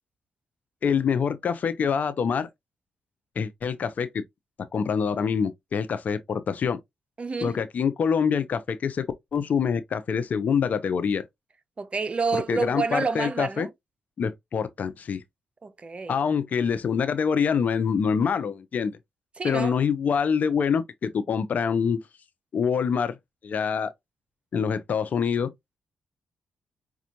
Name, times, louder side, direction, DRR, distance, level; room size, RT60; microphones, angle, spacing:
voice 1, 0.8-2.5 3.4-4.2 4.7-6.8 7.4-11.2 12.3-13.7 14.2-15.2 16.1-19.0 19.4-22.0 22.5-23.1 23.4-23.9 24.5-25.5, left 6 dB, 60° left, 0.6 m, -25 dB
voice 2, 7.2-7.6 11.8-13.7 15.6-16.1 19.4-19.8, right 4 dB, 40° right, 0.7 m, -29 dB
5.2 x 2.4 x 2.9 m
supercardioid pair, 55°, 3 cm